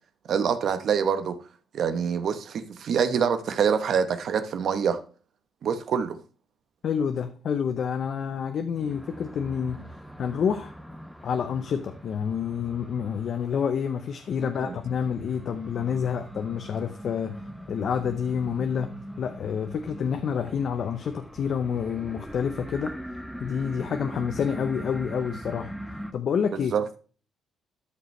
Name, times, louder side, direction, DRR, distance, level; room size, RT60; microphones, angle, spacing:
voice 1, 0.3-1.4 1.7-5.0 5.6-6.2 14.7-14.8 26.5-26.8, right 7 dB, 65° right, 1.0 m, -25 dB
voice 2, 6.8-9.8 10.2-10.7 11.2-17.4 17.7-18.9 19.2-22.9 23.4-25.7 26.1-26.7, left 7 dB, 60° left, 0.8 m, -28 dB
sound 1, 8.8-26.1, equal, ahead, 0.9 m, -42 dB
13.0 x 5.3 x 3.2 m
cardioid pair, 90°, 0 cm